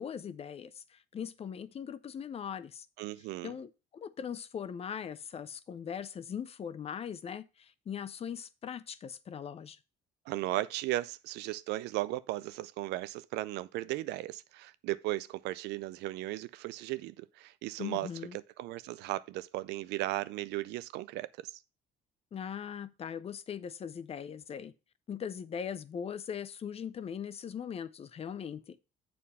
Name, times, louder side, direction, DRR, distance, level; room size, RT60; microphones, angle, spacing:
voice 1, 0.0-2.9 3.4-9.8 17.8-18.4 22.3-24.7 25.1-28.8, left 8 dB, 35° left, 0.5 m, -40 dB
voice 2, 3.0-3.5 10.3-18.1 18.6-21.5, right 17 dB, 85° right, 0.5 m, -36 dB
7.4 x 4.3 x 5.5 m
cardioid pair, 110°, 17 cm